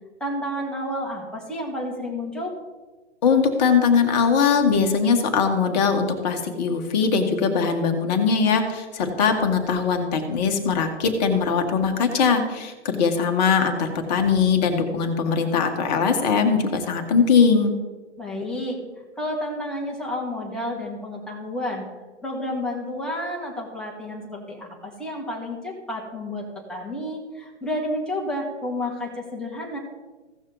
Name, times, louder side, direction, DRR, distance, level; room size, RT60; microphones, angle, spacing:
voice 1, 0.2-2.5 18.2-18.8 19.2-21.9 22.2-29.8, left 1 dB, ahead, -3 dB, 1.9 m, -30 dB
voice 2, 3.2-17.7, left 5 dB, 35° left, 6 dB, 1.5 m, -21 dB
16.0 x 6.2 x 3.9 m, 1.3 s
hypercardioid pair, 130°, 35 cm